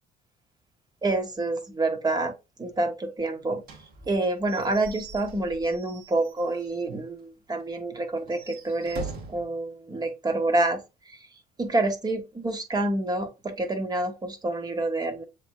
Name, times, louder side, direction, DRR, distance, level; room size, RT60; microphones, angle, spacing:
voice 1, 1.0-2.3 2.6-3.6 4.1-11.2 11.6-15.2, right 2 dB, 25° right, 1.4 m, -28 dB
Slam / Squeak / Wood, 3.6-6.8 7.2-7.3 7.6-7.7 8.2-9.5, right 4 dB, 65° right, 1.6 m, -42 dB
7.1 x 3.3 x 2.3 m
cardioid pair, 110°, 17 cm